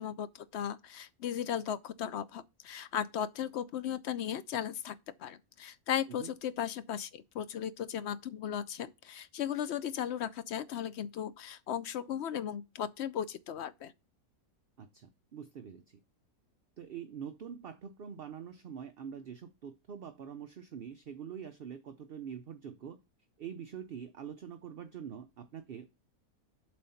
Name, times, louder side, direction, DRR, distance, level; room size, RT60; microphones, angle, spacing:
voice 1, 0.0-13.9, left 9 dB, 65° left, 0.7 m, -36 dB
voice 2, 14.8-16.0 16.8-23.0 23.4-25.9, right 8 dB, 55° right, 0.7 m, -45 dB
7.6 x 3.9 x 5.7 m
omnidirectional pair, 1.5 m